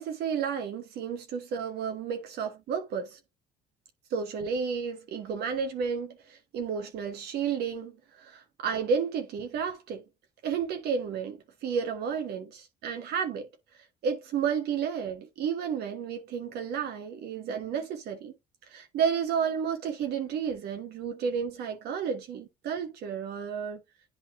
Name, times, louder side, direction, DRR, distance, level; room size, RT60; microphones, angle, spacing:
voice 1, 0.0-3.2 4.1-10.0 10.4-13.5 13.7-18.3 18.6-23.8, right 6 dB, 75° right, 1.4 m, -32 dB
11.0 x 4.0 x 2.7 m
cardioid pair, 110°, 17 cm